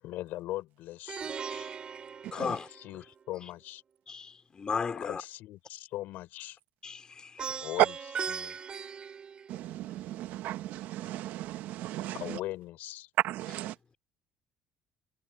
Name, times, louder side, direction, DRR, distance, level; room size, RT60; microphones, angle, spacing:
voice 1, 0.0-1.3 2.3-3.8 5.0-6.6 7.5-8.6 12.1-13.1, left 16 dB, 75° left, 6.0 m, -40 dB
Plucked string instrument, 1.1-3.2 7.4-10.0, right 6 dB, 30° right, 7.6 m, -39 dB
voice 2, 2.3-2.6 4.1-5.2 6.8-7.5, left 5 dB, 25° left, 4.4 m, -35 dB
voice 3, 9.7-12.1 13.2-13.7, right 14 dB, 75° right, 1.3 m, -38 dB
cardioid pair, 145°, 3 cm